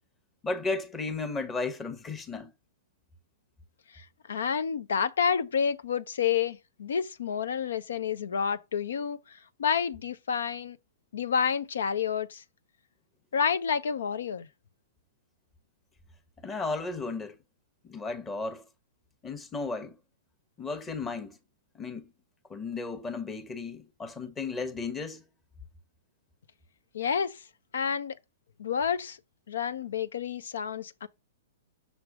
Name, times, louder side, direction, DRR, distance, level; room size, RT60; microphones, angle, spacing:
voice 1, 0.4-2.5 16.4-17.4 17.8-18.6 19.2-20.0 20.6-21.4 21.7-22.1 22.5-25.2, left 3 dB, 20° left, 1.1 m, -34 dB
voice 2, 3.9-10.8 11.1-12.4 13.3-14.5 26.9-27.4 27.7-28.2 28.6-29.2 29.5-31.1, left 7 dB, 75° left, 0.7 m, -29 dB
6.3 x 3.2 x 4.8 m
hypercardioid pair, 115°, 0 cm